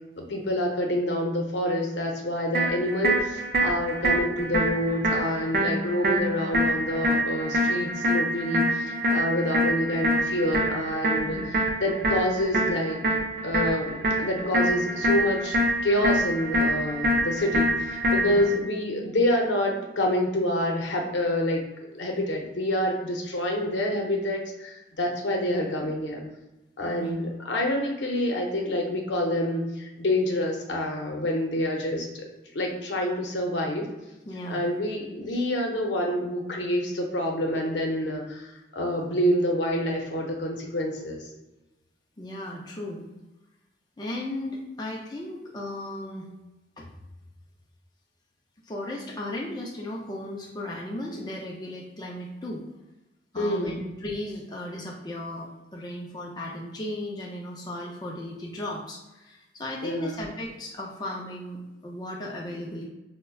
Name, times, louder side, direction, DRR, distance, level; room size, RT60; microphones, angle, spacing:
voice 1, 0.2-13.0 13.4-21.6 21.9-26.2 26.8-32.3 32.5-33.9 34.5-41.3 53.4-53.8 59.8-60.2, left 1 dB, 75° left, 1 dB, 0.7 m, -27 dB
sound 1, 2.5-18.5, equal, 55° right, 0.5 m, -26 dB
voice 2, 34.3-34.7 35.3-35.4 42.2-43.1 44.0-46.3 46.8-46.9 48.7-52.6 53.3-62.9, left 1 dB, 20° left, -2 dB, 0.4 m, -36 dB
5.2 x 2.1 x 2.3 m, 1.0 s
head